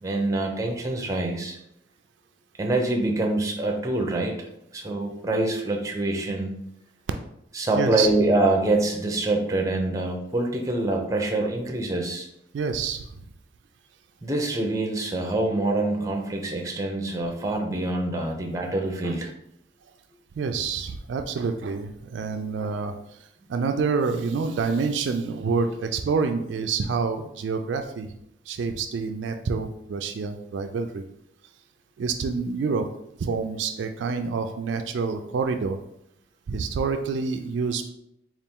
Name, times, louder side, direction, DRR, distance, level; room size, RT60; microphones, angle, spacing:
voice 1, 0.0-1.6 2.6-4.3 4.7-6.5 7.5-12.3 14.2-19.3, right 2 dB, 15° right, 2 dB, 0.5 m, -25 dB
voice 2, 7.7-8.1 12.5-13.0 18.2-18.3 19.0-19.1 20.4-23.2 23.5-28.1 28.5-31.0 32.0-32.9 33.2-35.8 36.5-37.9, right 5 dB, 70° right, 6 dB, 0.3 m, -27 dB
4.1 x 2.4 x 3.6 m, 0.78 s
head